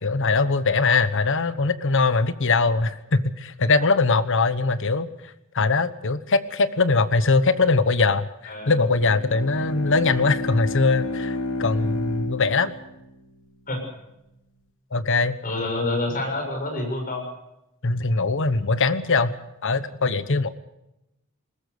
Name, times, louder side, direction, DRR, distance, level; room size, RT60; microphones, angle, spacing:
voice 1, 0.0-5.1 5.5-12.7 14.9-15.3 17.8-19.3 19.6-20.5, left 3 dB, 60° left, 13 dB, 1.1 m, -21 dB
voice 2, 8.5-8.8 13.7-13.8 15.4-17.2, left 2 dB, 40° left, 3 dB, 6.7 m, -27 dB
Bowed string instrument, 8.8-13.6, left 2 dB, 90° left, 3.5 m, -31 dB
20.5 x 20.0 x 6.9 m, 0.88 s
head